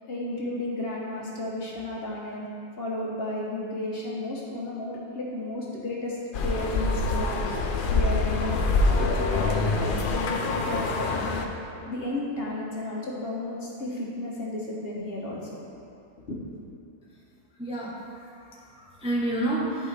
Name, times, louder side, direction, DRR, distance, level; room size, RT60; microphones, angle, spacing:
voice 1, 0.0-2.5 2.8-6.2 6.4-7.4 7.9-8.6 9.0-11.4 11.9-15.7 16.3-16.4, left 1 dB, 50° left, -4 dB, 1.1 m, -33 dB
sound 1, 6.3-11.5, left 3 dB, 65° left, 0.5 m, -25 dB
voice 2, 17.6-19.9, right 1 dB, 5° right, -5 dB, 0.7 m, -30 dB
11.0 x 4.8 x 3.3 m, 2.7 s
omnidirectional pair, 1.5 m